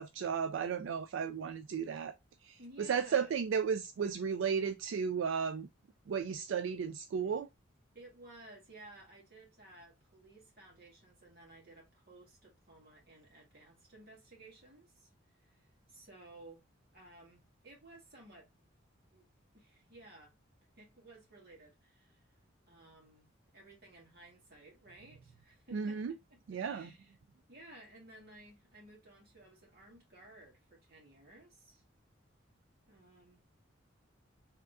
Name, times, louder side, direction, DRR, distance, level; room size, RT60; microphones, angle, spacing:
voice 1, 0.0-2.2 2.4-5.7 6.1-7.5 25.7-26.1 26.5-26.9, right 6 dB, 70° right, 0.3 m, -34 dB
voice 2, 2.6-3.4 7.9-16.6 16.9-18.5 19.1-19.2 19.5-20.3 20.8-22.3 22.7-23.3 23.5-26.0 26.5-27.2 27.5-31.8 32.9-33.6, right 2 dB, 50° right, 2.2 m, -56 dB
4.6 x 3.7 x 2.4 m
head